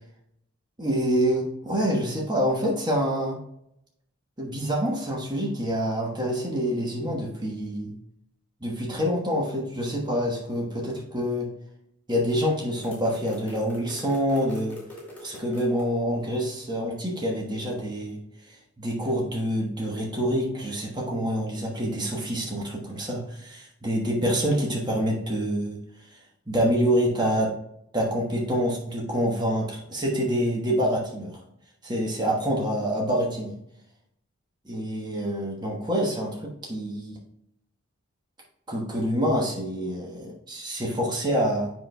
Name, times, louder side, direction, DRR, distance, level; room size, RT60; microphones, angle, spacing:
voice 1, 0.8-3.4 4.4-7.9 8.6-11.5 12.1-14.8 15.2-18.2 18.5-25.8 26.5-27.5 27.9-31.4 31.8-33.6 34.6-37.2 38.7-41.7, equal, 20° right, -2 dB, 1.1 m, -26 dB
sound 1, 12.8-15.8, left 1 dB, 10° left, 2.6 m, -43 dB
7.4 x 5.8 x 2.3 m, 0.77 s
head